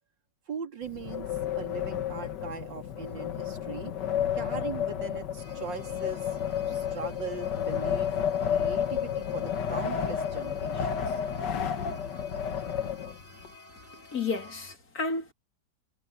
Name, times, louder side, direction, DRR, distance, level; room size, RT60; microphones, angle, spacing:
voice 1, 0.5-3.9 4.3-6.3 6.7-11.1, right 5 dB, 85° right, 3.3 m, -40 dB
Wind, 0.8-13.5, left 8 dB, 70° left, 1.9 m, -31 dB
sound 1, 5.4-14.8, left 1 dB, 25° left, 5.8 m, -52 dB
voice 2, 14.1-15.3, left 4 dB, 55° left, 3.1 m, -31 dB
omnidirectional pair, 1.9 m